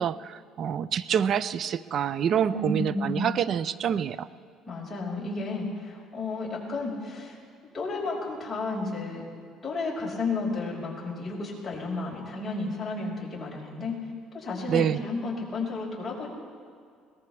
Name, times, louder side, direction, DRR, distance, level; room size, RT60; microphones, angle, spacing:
voice 1, 0.0-4.3 14.7-15.0, right 8 dB, 50° right, 16 dB, 0.5 m, -27 dB
voice 2, 2.5-3.3 4.7-7.4 7.7-9.2 9.6-13.9 14.3-16.3, left 3 dB, 20° left, -5 dB, 5.4 m, -32 dB
22.5 x 19.0 x 3.4 m, 2.2 s
cardioid pair, 115°, 0 cm